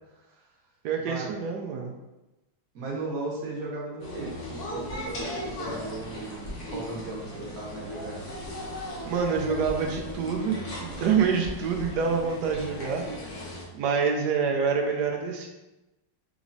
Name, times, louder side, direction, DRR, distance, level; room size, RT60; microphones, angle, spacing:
voice 1, 0.8-1.9 9.0-13.0 13.7-15.5, right 6 dB, 70° right, 2 dB, 1.0 m, -26 dB
voice 2, 2.7-8.2, right 2 dB, 55° right, -3 dB, 1.2 m, -36 dB
sound 1, 4.0-13.6, left 1 dB, 60° left, 1.3 m, -37 dB
5.0 x 3.0 x 2.6 m, 1.0 s
omnidirectional pair, 2.0 m